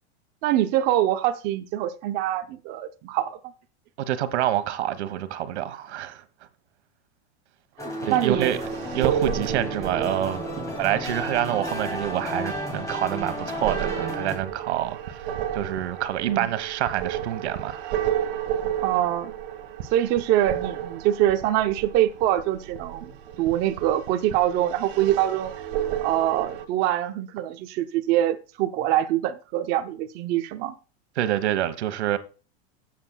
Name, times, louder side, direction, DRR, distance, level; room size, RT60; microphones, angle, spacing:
voice 1, 0.4-3.5 8.1-8.5 16.3-16.5 18.8-19.3 19.9-23.1 23.4-25.5 26.0-30.7, right 12 dB, 30° right, 0.6 m, -24 dB
voice 2, 4.0-6.2 8.0-8.6 8.9-10.4 10.8-15.3 15.5-18.0 31.2-32.2, right 12 dB, 85° right, 1.3 m, -27 dB
sound 1, 7.8-14.4, equal, 10° left, 2.3 m, -33 dB
sound 2, 8.3-26.6, right 10 dB, 55° right, 1.5 m, -33 dB
15.0 x 7.6 x 2.2 m
supercardioid pair, 165°, 33 cm